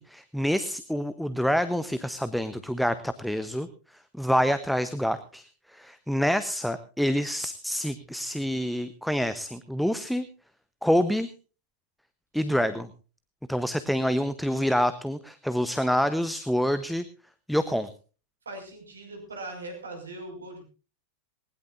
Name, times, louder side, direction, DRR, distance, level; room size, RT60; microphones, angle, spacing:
voice 1, 0.0-3.7 4.1-10.3 10.8-11.3 12.3-12.9 13.5-17.0 17.5-17.9, equal, ahead, 13 dB, 0.9 m, -27 dB
voice 2, 18.5-20.6, right 2 dB, 75° right, 4 dB, 5.5 m, -40 dB
20.0 x 20.0 x 2.6 m, 0.35 s
figure-of-eight pair, 90°, 0 cm